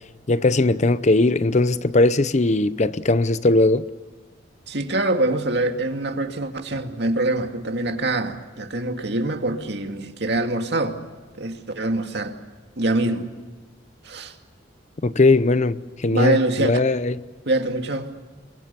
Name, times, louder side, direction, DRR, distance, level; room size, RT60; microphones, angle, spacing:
voice 1, 0.3-3.8 15.0-17.2, left 2 dB, 40° left, 0.7 m, -19 dB
voice 2, 4.7-11.0 11.4-12.3 12.8-13.3 14.0-14.3 16.1-16.7 17.5-18.1, right 2 dB, 65° right, 2.3 m, -24 dB
29.5 x 23.0 x 7.0 m
head